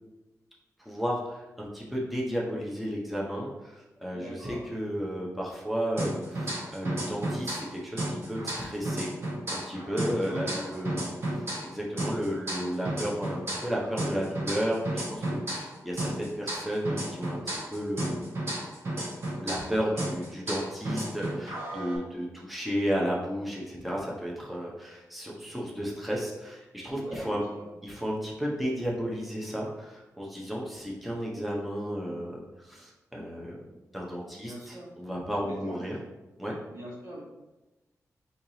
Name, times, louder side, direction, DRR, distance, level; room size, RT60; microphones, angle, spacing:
voice 1, 0.8-9.1 9.5-11.1 11.6-18.3 19.4-27.4 27.8-33.6 33.9-36.0 36.4-36.6, equal, ahead, -4 dB, 0.8 m, -33 dB
voice 2, 4.1-4.6 9.9-11.1 26.9-27.7 34.3-34.9 35.4-35.9 36.7-37.2, equal, 70° right, -5 dB, 1.4 m, -43 dB
sound 1, 6.0-7.7 8.0-11.7 12.0-15.7 16.0-19.7 20.0-22.0, right 1 dB, 45° right, 1.2 m, -33 dB
4.5 x 2.9 x 2.7 m, 1.1 s
wide cardioid pair, 105°, 6 cm